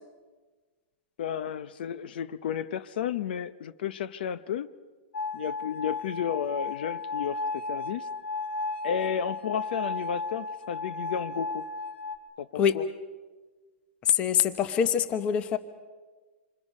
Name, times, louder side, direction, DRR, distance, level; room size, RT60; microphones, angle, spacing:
voice 1, 1.2-4.7 5.3-8.1 8.8-11.6 12.4-12.8, left 8 dB, 55° left, 14 dB, 0.8 m, -32 dB
sound 1, 5.1-12.2, left 3 dB, 90° left, 2.2 m, -34 dB
voice 2, 14.0-15.6, left 8 dB, 20° left, 12 dB, 0.9 m, -24 dB
27.5 x 25.5 x 5.5 m, 1.4 s
supercardioid pair, 175°, 6 cm